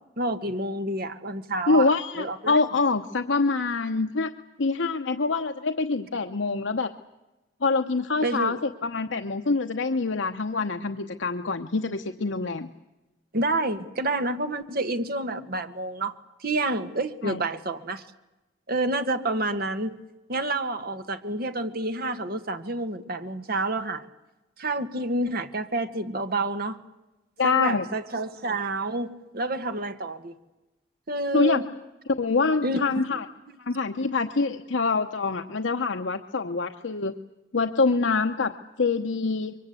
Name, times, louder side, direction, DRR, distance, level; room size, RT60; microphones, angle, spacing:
voice 1, 0.2-2.6 8.2-8.6 13.3-16.1 16.4-18.0 18.7-20.0 20.3-24.1 24.6-26.8 27.4-30.3 31.1-31.6 32.6-33.2, right 2 dB, 55° right, 8 dB, 1.6 m, -29 dB
voice 2, 1.7-4.3 4.6-6.9 7.6-12.7 17.2-17.4 27.4-27.8 31.3-31.6 32.2-33.2 33.6-37.1 37.5-39.6, left 4 dB, 80° left, 7 dB, 0.9 m, -25 dB
24.5 x 23.5 x 8.3 m, 1.0 s
head